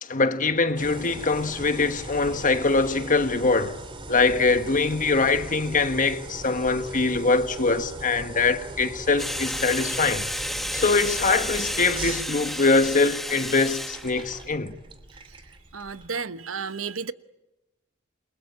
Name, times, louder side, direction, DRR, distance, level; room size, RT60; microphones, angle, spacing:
voice 1, 0.0-3.8 4.1-10.2 10.7-14.7, left 3 dB, 40° left, 1.4 m, -23 dB
sound 1, 0.8-16.1, right 2 dB, 25° right, 2.7 m, -40 dB
sound 2, 9.2-14.5, equal, ahead, 1.6 m, -32 dB
voice 2, 15.7-17.1, right 5 dB, 90° right, 1.0 m, -32 dB
29.0 x 22.5 x 8.6 m
head